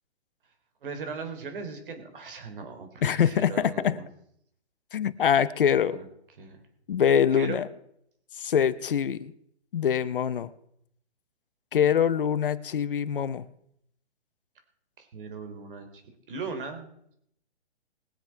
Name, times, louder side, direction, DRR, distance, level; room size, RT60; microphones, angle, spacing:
voice 1, 0.8-4.1 5.8-6.1 6.4-6.6 7.3-7.7 15.0-16.0 16.3-16.9, right 4 dB, 50° right, 7 dB, 3.4 m, -38 dB
voice 2, 3.0-4.0 4.9-6.0 6.9-7.7 8.4-9.3 9.7-10.5 11.7-13.5, left 8 dB, 55° left, 15 dB, 0.9 m, -24 dB
21.5 x 7.6 x 4.6 m, 0.73 s
hypercardioid pair, 160°, 33 cm